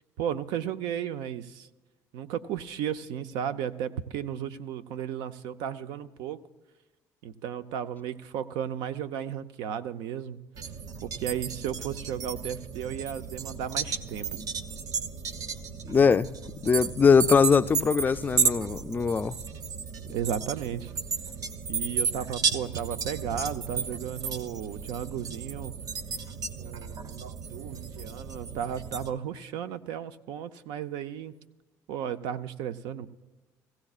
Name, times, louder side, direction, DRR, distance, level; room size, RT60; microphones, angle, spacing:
voice 1, 0.2-1.7 2.1-6.4 7.2-10.4 11.0-14.5 20.1-20.9 21.7-25.7 26.6-31.3 31.9-33.1, right 9 dB, 80° right, 0.6 m, -34 dB
sound 1, 10.5-29.1, right 6 dB, 55° right, 0.8 m, -33 dB
voice 2, 15.8-16.3 16.6-19.4, left 5 dB, 25° left, 0.3 m, -21 dB
17.5 x 15.5 x 2.4 m
cardioid pair, 100°, 7 cm